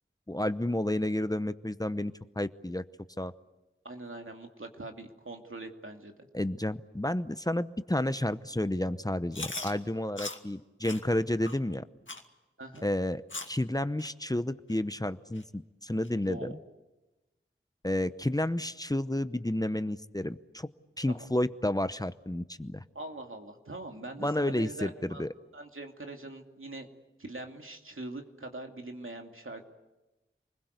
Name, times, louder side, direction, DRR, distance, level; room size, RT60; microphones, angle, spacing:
voice 1, 0.3-2.8 3.2-3.3 6.3-11.8 12.8-13.2 13.5-16.5 17.8-20.7 21.0-22.8 24.2-25.3, left 1 dB, 20° left, 12 dB, 0.8 m, -31 dB
voice 2, 3.8-6.1 12.6-12.9 16.1-16.6 21.1-21.3 22.9-25.2 25.5-26.9 27.2-29.6, right 2 dB, 80° right, 3 dB, 2.6 m, -42 dB
Chewing mastication, 9.3-9.7 10.2-10.4 10.8-11.0 11.4-11.6 12.1-12.3 12.8-12.9 13.3-13.6 14.0-14.1 14.7-14.8 15.4-15.5 16.0-16.1, left 2 dB, 70° left, 2.2 m, -39 dB
28.5 x 21.0 x 8.2 m, 1.0 s
wide cardioid pair, 50°, 21 cm